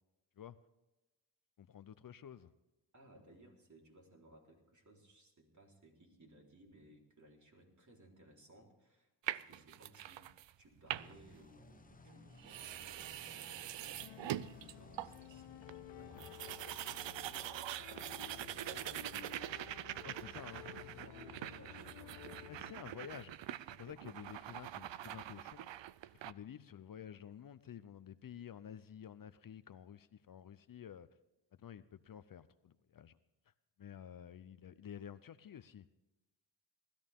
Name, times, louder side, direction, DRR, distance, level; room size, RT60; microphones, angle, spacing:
voice 1, 1.6-2.5 20.0-20.6 22.5-25.7 26.1-31.1 31.5-33.2 33.8-35.9, left 9 dB, 50° left, 0.7 m, -51 dB
voice 2, 2.9-19.2 20.7-22.2, right 1 dB, 40° right, 4.0 m, -62 dB
sound 1, 9.3-10.5 10.8-11.3 12.1-12.2 12.4-15.3 15.7-15.8 16.0-26.3, right 13 dB, 75° right, 0.6 m, -44 dB
sound 2, 10.9-16.4, left 3 dB, 20° left, 0.9 m, -60 dB
sound 3, 14.0-22.7, left 16 dB, 85° left, 0.5 m, -54 dB
19.5 x 13.5 x 3.6 m
cardioid pair, 75°, 44 cm